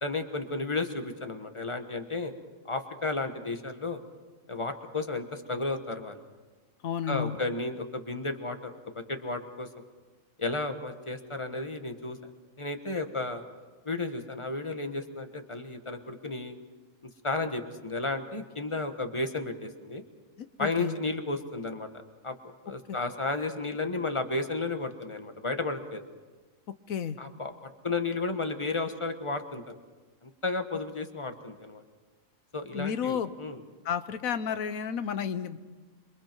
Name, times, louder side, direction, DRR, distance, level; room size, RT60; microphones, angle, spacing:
voice 1, 0.0-2.3 2.7-4.0 4.5-6.2 7.1-9.7 10.4-12.2 12.6-13.4 13.8-16.5 17.2-20.0 20.6-21.9 22.2-22.3 22.6-26.0 27.2-27.5 27.8-29.8 30.2-31.8 32.5-33.6, left 3 dB, 25° left, 7 dB, 1.2 m, -33 dB
voice 2, 6.8-7.4 20.4-21.0 26.9-27.2 32.7-33.3 33.8-35.6, left 7 dB, 85° left, 12 dB, 1.3 m, -31 dB
27.5 x 23.0 x 4.6 m, 1.3 s
omnidirectional pair, 1.4 m